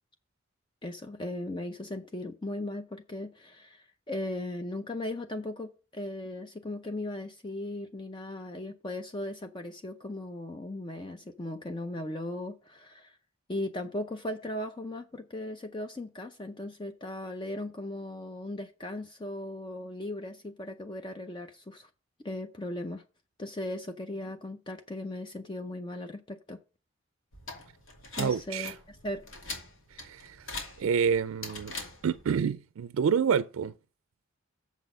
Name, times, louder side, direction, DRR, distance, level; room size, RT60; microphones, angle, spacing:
voice 1, 0.8-13.2 13.5-21.9 22.2-23.0 23.4-26.6 28.2-29.3, left 1 dB, 25° left, 0.5 m, -37 dB
sound 1, 27.3-32.3, left 3 dB, 80° left, 2.5 m, -43 dB
voice 2, 28.2-28.8 29.9-30.5 30.8-31.7 32.0-33.7, right 7 dB, 90° right, 0.4 m, -28 dB
7.2 x 6.1 x 5.3 m
head